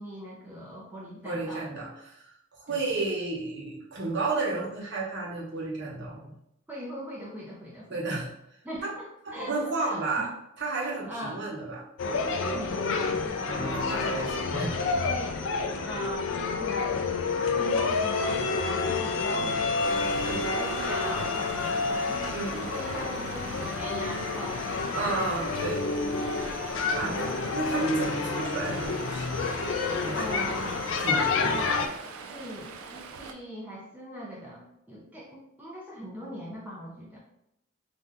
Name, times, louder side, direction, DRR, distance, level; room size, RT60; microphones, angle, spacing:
voice 1, 0.0-1.7 2.7-3.0 6.7-8.2 8.6-9.0 9.3-10.3 11.1-11.4 12.2-14.4 15.1-15.4 15.8-22.4 22.6-25.2 26.8-27.6 30.1-30.8 31.3-31.8 32.3-37.2, equal, 10° right, -5 dB, 0.4 m, -40 dB
voice 2, 1.2-2.3 2.5-6.3 7.9-8.3 8.8-9.0 9.2-10.3 10.6-11.8 13.5-14.9 20.2-20.4 22.3-22.7 24.9-25.8 26.9-29.3 30.0-31.6, right 3 dB, 55° right, -4 dB, 0.9 m, -32 dB
sound 1, 12.0-31.9, left 4 dB, 65° left, 0.3 m, -29 dB
Stream, 19.8-33.3, right 4 dB, 90° right, 0.4 m, -43 dB
2.6 x 2.2 x 3.5 m, 0.80 s
head